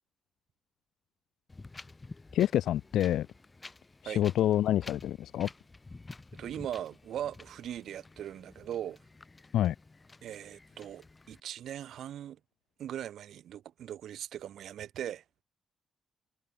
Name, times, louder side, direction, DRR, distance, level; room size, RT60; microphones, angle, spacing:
Wind, 1.5-11.4, left 3 dB, 15° left, 4.7 m, -51 dB
voice 1, 2.3-3.3 4.0-5.5 9.5-9.7, left 12 dB, 80° left, 1.6 m, -27 dB
voice 2, 6.3-9.0 10.2-12.4 12.8-15.4, right 10 dB, 65° right, 7.7 m, -40 dB
cardioid pair, 160°, 0 cm